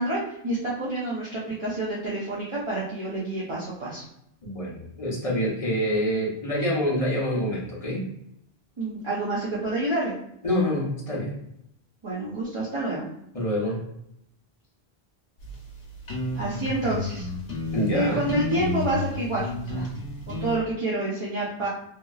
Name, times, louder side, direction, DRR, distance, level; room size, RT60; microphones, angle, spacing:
voice 1, 0.0-4.0 8.8-10.1 12.0-13.1 16.3-17.3 17.9-19.9 20.3-21.7, right 2 dB, 35° right, -7 dB, 0.7 m, -28 dB
voice 2, 4.4-8.1 10.4-11.3 13.3-13.8 17.7-18.3, equal, 35° left, -4 dB, 0.9 m, -26 dB
sound 1, 15.4-20.6, left 2 dB, 70° left, 1.0 m, -32 dB
2.9 x 2.7 x 2.3 m, 0.76 s
omnidirectional pair, 1.0 m